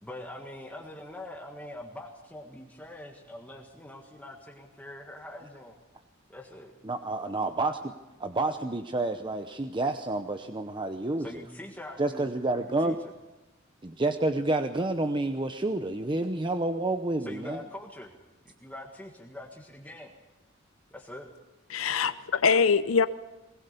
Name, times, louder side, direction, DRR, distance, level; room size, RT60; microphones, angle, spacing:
voice 1, 0.0-5.8 6.3-6.7 11.2-12.4 12.7-12.9 17.2-18.1 18.6-20.1 20.9-21.3, left 1 dB, 10° left, 1.7 m, -43 dB
voice 2, 6.8-7.9 8.2-11.4 12.0-13.0 13.8-17.6, right 2 dB, 25° right, 0.8 m, -29 dB
voice 3, 21.7-23.1, left 5 dB, 85° left, 0.7 m, -23 dB
21.0 x 19.5 x 6.8 m
head